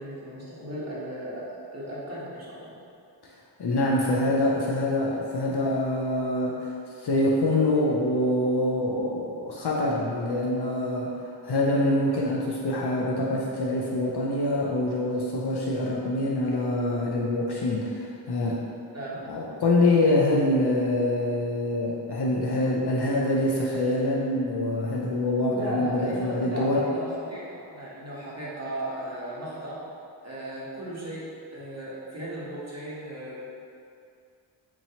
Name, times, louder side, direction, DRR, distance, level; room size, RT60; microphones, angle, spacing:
voice 1, 0.0-1.5 1.7-2.8 18.9-19.2 25.5-29.8 30.2-33.4, right 1 dB, 35° right, -7 dB, 1.1 m, -36 dB
voice 2, 3.6-6.7 7.0-11.1 11.4-18.6 19.2-26.8, left 1 dB, 60° left, -4 dB, 0.5 m, -25 dB
4.4 x 2.9 x 2.8 m, 2.5 s
wide cardioid pair, 55°, 46 cm